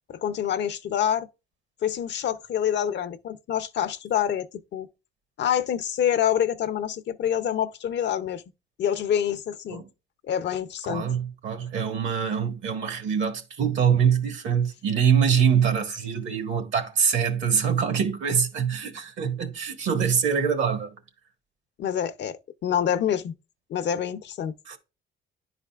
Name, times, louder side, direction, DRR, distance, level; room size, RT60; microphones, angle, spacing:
voice 1, 0.1-1.3 1.8-4.9 5.4-8.4 8.8-9.8 10.2-11.1 21.8-23.4 23.7-24.5, left 9 dB, 65° left, 0.6 m, -26 dB
voice 2, 10.9-20.9 24.7-24.8, right 7 dB, 75° right, 1.5 m, -24 dB
10.5 x 4.1 x 2.3 m
cardioid pair, 90°, 20 cm